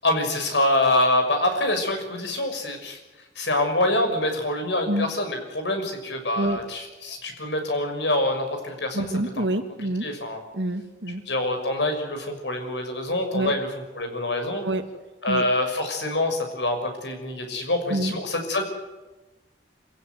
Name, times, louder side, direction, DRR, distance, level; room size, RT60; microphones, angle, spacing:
voice 1, 0.0-3.0 3.4-9.1 9.4-9.5 9.8-10.4 11.3-13.7 14.0-14.6 15.2-18.6, left 1 dB, 75° left, 5 dB, 6.1 m, -25 dB
voice 2, 8.9-10.0 10.5-11.2 13.3-13.5 14.6-14.8 15.3-15.4 17.9-18.1, right 1 dB, 80° right, 7 dB, 2.4 m, -26 dB
26.5 x 17.0 x 9.3 m, 1.2 s
head